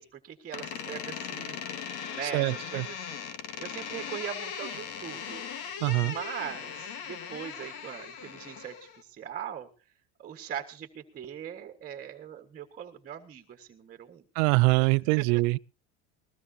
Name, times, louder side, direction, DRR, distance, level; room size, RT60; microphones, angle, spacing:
voice 1, 0.0-3.1 3.6-5.4 6.0-9.7 10.2-14.2 14.8-14.9 15.2-15.3, right 9 dB, 25° right, 1.6 m, -41 dB
Door, 0.5-9.0, left 7 dB, 70° left, 2.0 m, -39 dB
voice 2, 2.3-2.8 5.8-6.1 14.4-15.6, right 26 dB, 80° right, 0.6 m, -24 dB
21.0 x 16.5 x 2.8 m
cardioid pair, 160°, 33 cm